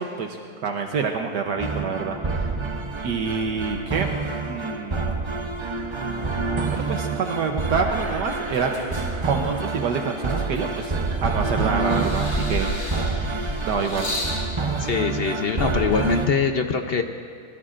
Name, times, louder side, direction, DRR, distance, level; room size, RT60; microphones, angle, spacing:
voice 1, 0.0-2.5 3.0-4.1 4.5-5.2 6.7-8.7 9.2-10.9 11.2-12.7 13.6-14.2, right 5 dB, 75° right, 3 dB, 1.5 m, -27 dB
sound 1, 1.6-16.3, right 3 dB, 45° right, 0.3 m, -28 dB
sound 2, 8.0-9.7 10.3-11.4 11.8-14.4 15.3-15.4, equal, 35° left, 3.2 m, -31 dB
voice 2, 14.8-17.0, left 5 dB, 55° left, 5 dB, 0.6 m, -23 dB
23.5 x 20.0 x 2.5 m, 2.1 s
omnidirectional pair, 1.9 m